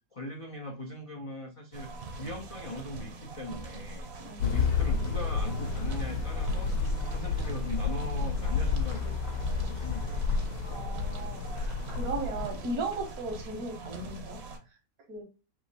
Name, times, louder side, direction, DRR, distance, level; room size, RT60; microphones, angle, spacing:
voice 1, 0.1-4.1 4.4-9.2 9.7-10.3, left 1 dB, 55° left, 2 dB, 0.3 m, -40 dB
sound 1, 1.7-14.6, right 3 dB, 55° right, 0.9 m, -43 dB
sound 2, 4.4-12.5, left 5 dB, 90° left, 1.2 m, -30 dB
voice 2, 10.6-14.4 15.1-15.2, right 2 dB, 80° right, 3 dB, 1.7 m, -36 dB
3.6 x 2.9 x 4.0 m, 0.33 s
omnidirectional pair, 1.6 m